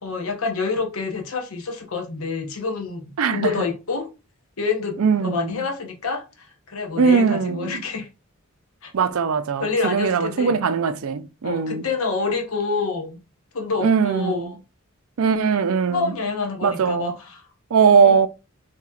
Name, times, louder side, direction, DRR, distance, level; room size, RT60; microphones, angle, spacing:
voice 1, 0.0-4.1 4.6-8.1 8.8-8.9 9.6-10.6 11.4-13.2 13.5-14.6 15.9-17.4 18.0-18.2, left 4 dB, 75° left, 0.9 m, -27 dB
voice 2, 3.2-3.7 5.0-5.5 7.0-7.8 8.9-11.8 13.8-14.5 15.2-16.1 16.6-17.1 17.7-18.3, right 6 dB, 70° right, 0.4 m, -20 dB
4.3 x 2.9 x 2.4 m
head